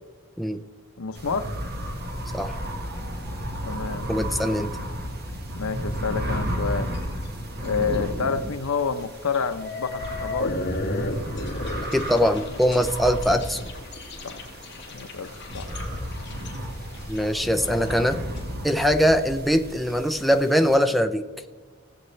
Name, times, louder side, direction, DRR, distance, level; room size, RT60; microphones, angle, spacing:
voice 1, 1.0-1.5 3.7-4.1 5.5-6.9 7.6-10.6 14.2-14.4 14.9-15.7, left 5 dB, 80° left, 10 dB, 0.8 m, -28 dB
sound 1, 1.1-20.8, equal, 50° right, 1.7 m, -33 dB
voice 2, 4.1-4.7 11.9-13.6 17.1-18.2 18.6-21.2, equal, ahead, 6 dB, 0.5 m, -22 dB
sound 2, 6.9-7.3 7.6-8.0 8.4-8.5 9.3-18.4, left 2 dB, 55° left, 1.8 m, -34 dB
18.5 x 7.6 x 3.3 m, 1.4 s
head